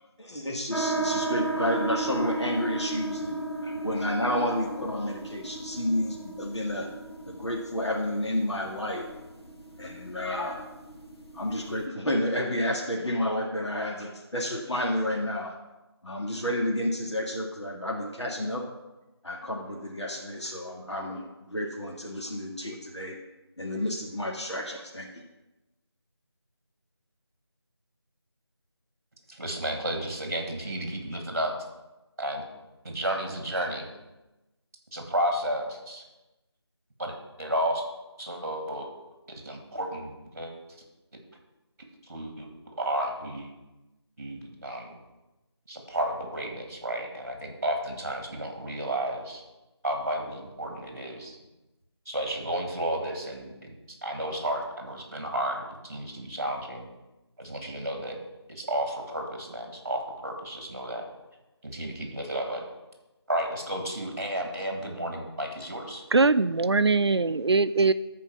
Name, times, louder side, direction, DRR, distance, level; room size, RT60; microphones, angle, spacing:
voice 1, 0.2-6.9 7.3-9.1 9.8-10.7 11.3-15.6 16.0-18.6 19.2-23.2 23.6-25.1, left 1 dB, 85° left, -1 dB, 2.0 m, -30 dB
sound 1, 0.7-11.8, right 2 dB, 65° left, 1.7 m, -35 dB
voice 2, 29.3-31.5 32.2-32.5 32.8-33.9 34.9-36.0 37.0-37.1 37.4-37.8 38.2-38.9 39.4-40.5 42.0-42.5 42.8-43.5 44.2-45.0 45.7-49.4 49.8-51.4 52.1-53.7 54.0-56.9 57.4-58.2 58.5-61.1 61.6-62.6 63.3-66.0, right 1 dB, 35° right, 3 dB, 2.0 m, -32 dB
voice 3, 66.1-67.9, right 3 dB, 70° right, 12 dB, 0.5 m, -21 dB
13.5 x 4.5 x 6.0 m, 1.0 s
figure-of-eight pair, 180°, 14 cm